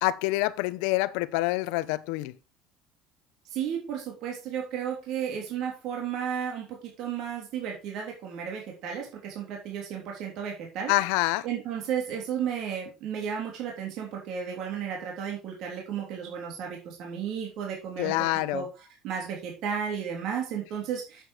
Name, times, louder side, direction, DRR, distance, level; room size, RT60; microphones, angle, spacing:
voice 1, 0.0-2.3 10.9-11.4 18.0-18.6, left 18 dB, 85° left, 0.7 m, -26 dB
voice 2, 3.5-10.9 11.4-21.3, right 8 dB, 65° right, 3.4 m, -33 dB
8.3 x 7.9 x 4.5 m
cardioid pair, 125°, 0 cm